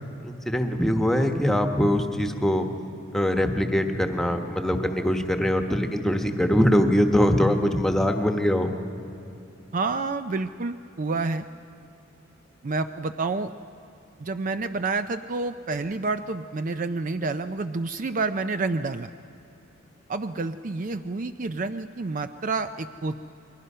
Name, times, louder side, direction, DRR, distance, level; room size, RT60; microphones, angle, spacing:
voice 1, 0.2-2.7 3.1-8.7, equal, ahead, 5 dB, 1.2 m, -22 dB
voice 2, 9.7-11.4 12.6-13.5 14.2-19.1 20.1-23.3, right 3 dB, 40° right, 10 dB, 0.4 m, -29 dB
30.0 x 22.5 x 5.6 m, 2.8 s
head